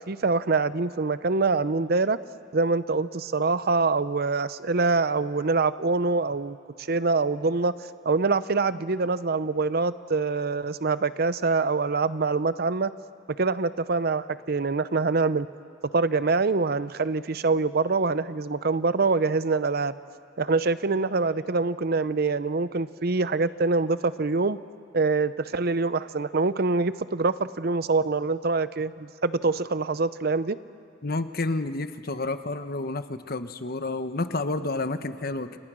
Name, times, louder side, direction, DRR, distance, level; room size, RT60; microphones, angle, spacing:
voice 1, 0.1-2.2 2.5-6.6 6.9-7.7 8.0-12.9 13.4-15.5 15.9-19.9 20.4-24.6 24.9-30.6, right 3 dB, 55° right, 14 dB, 0.7 m, -25 dB
voice 2, 31.0-35.6, left 2 dB, 50° left, 10 dB, 1.1 m, -30 dB
29.5 x 29.0 x 6.3 m, 2.3 s
head